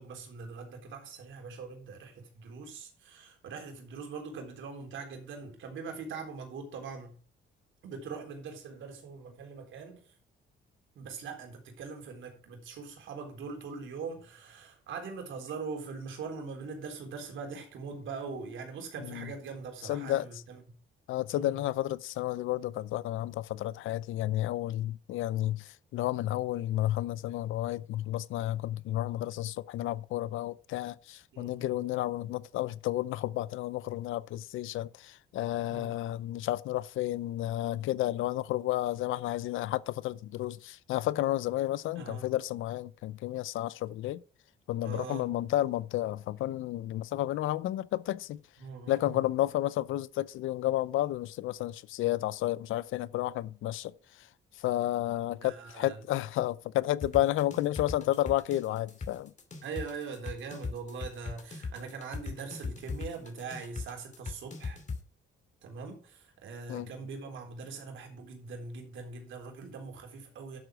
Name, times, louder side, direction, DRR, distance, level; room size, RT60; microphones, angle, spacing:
voice 1, 0.0-7.2 7.8-10.0 11.0-20.6 21.3-21.6 31.3-31.8 35.7-36.0 42.0-42.3 44.8-45.3 48.6-49.2 55.3-56.0 59.6-64.8 65.6-70.6, right 5 dB, 75° right, 3.9 m, -42 dB
voice 2, 19.9-20.3 21.1-44.2 44.7-48.4 48.9-53.9 54.6-59.3 66.7-66.9, left 14 dB, 85° left, 0.6 m, -31 dB
sound 1, 57.0-65.0, left 4 dB, 35° left, 2.4 m, -38 dB
11.5 x 7.9 x 4.9 m
cardioid pair, 90°, 20 cm